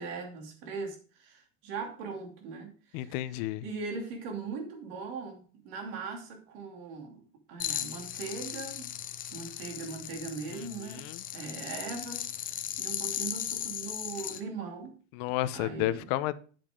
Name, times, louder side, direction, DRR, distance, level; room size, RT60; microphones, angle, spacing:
voice 1, 0.0-7.2 7.5-8.9 9.3-11.0 11.3-14.9 15.5-16.1, right 4 dB, 75° right, 3 dB, 2.8 m, -40 dB
voice 2, 2.9-3.6 10.5-11.2 15.1-16.3, left 15 dB, 65° left, 14 dB, 0.7 m, -32 dB
sound 1, 7.6-14.4, left 11 dB, 30° left, 0.6 m, -37 dB
9.0 x 7.5 x 3.7 m, 0.39 s
cardioid pair, 160°, 30 cm